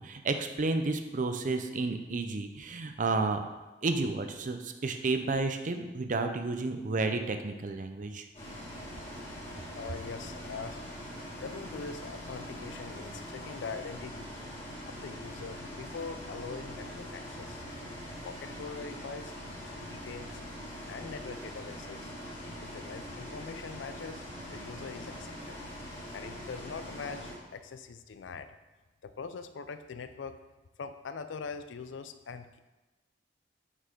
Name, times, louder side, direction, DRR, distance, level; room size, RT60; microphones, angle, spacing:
voice 1, 0.0-3.4 3.8-8.3, right 3 dB, 45° right, 7 dB, 0.5 m, -31 dB
Bus, 8.3-27.3, equal, 35° left, 2.2 m, -43 dB
voice 2, 9.7-10.8 11.4-14.3 14.9-17.6 18.2-19.3 19.7-20.4 20.9-22.1 22.6-24.3 24.5-25.6 26.1-28.5 29.0-30.4 30.8-32.6, left 5 dB, 85° left, 10 dB, 0.4 m, -42 dB
6.4 x 5.5 x 3.7 m, 1.1 s
head